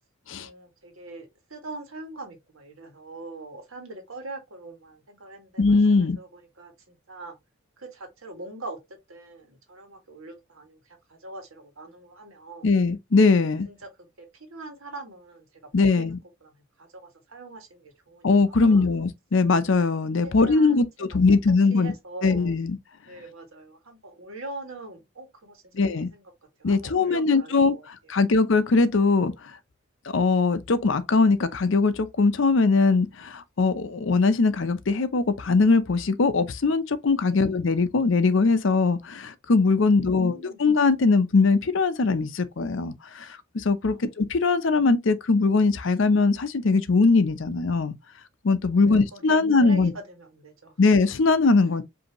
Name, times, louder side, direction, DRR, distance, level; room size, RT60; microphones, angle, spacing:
voice 1, 0.3-7.4 7.8-12.7 13.6-15.5 15.8-18.8 20.2-20.8 21.7-22.5 23.1-25.6 25.9-26.2 26.6-27.9 28.1-28.2 37.2-37.6 39.8-40.6 43.9-44.0 48.7-50.8, right 2 dB, 90° right, 1.7 m, -43 dB
voice 2, 5.6-6.2 12.6-13.7 15.7-16.2 18.2-21.9 22.2-22.8 25.7-26.1 26.6-29.3 30.1-43.3 43.5-47.9 48.4-49.9 50.8-51.8, left 3 dB, 65° left, 0.6 m, -21 dB
5.1 x 2.8 x 2.9 m
head